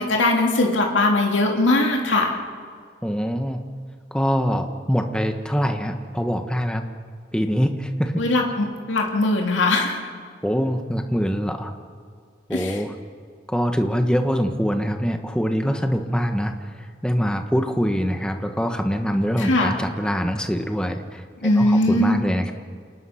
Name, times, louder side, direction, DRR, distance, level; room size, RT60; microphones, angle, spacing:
voice 1, 0.0-2.3 8.2-10.0 12.5-12.8 19.4-19.7 21.4-22.2, left 2 dB, 85° left, 1 dB, 2.7 m, -20 dB
voice 2, 3.0-3.6 4.1-6.8 7.3-8.2 10.4-11.7 12.5-13.0 13.5-16.7 17.0-21.2 21.6-22.5, equal, 5° left, 5 dB, 1.3 m, -24 dB
29.0 x 19.5 x 5.8 m, 2.1 s
head